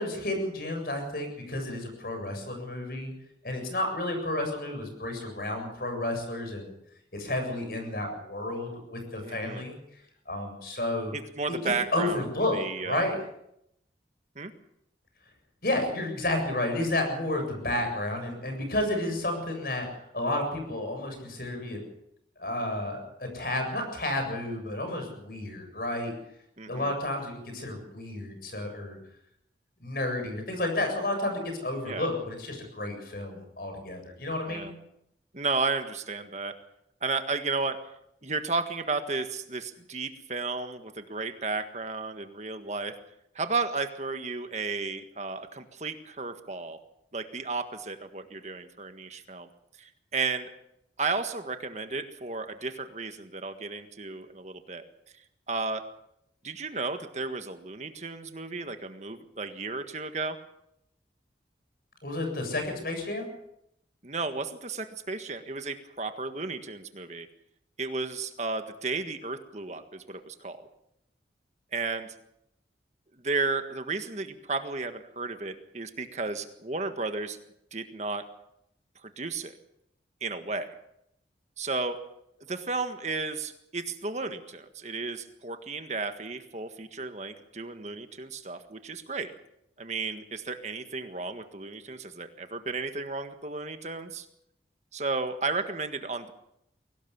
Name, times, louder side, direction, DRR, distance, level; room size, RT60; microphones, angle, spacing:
voice 1, 0.0-3.1 3.4-6.7 7.1-9.8 10.3-11.1 11.6-13.2 15.6-19.9 20.1-21.8 22.4-26.1 26.6-29.0 29.8-34.7 62.0-63.3, left 1 dB, 55° left, 5 dB, 7.7 m, -31 dB
voice 2, 9.2-9.6 11.1-12.2 12.5-13.1 14.3-14.5 26.6-26.9 31.9-32.1 34.5-34.7 35.3-36.6 37.0-37.8 38.2-42.9 43.3-46.8 47.1-49.5 49.8-50.5 51.0-54.8 55.5-55.9 56.4-60.4 64.0-67.3 67.8-70.7 71.7-72.1 73.2-77.4 77.7-78.2 79.0-79.6 80.2-80.7 81.6-82.0 82.5-89.3 89.8-94.2 94.9-96.3, right 3 dB, 40° right, 8 dB, 1.6 m, -33 dB
23.0 x 18.0 x 7.2 m, 0.77 s
head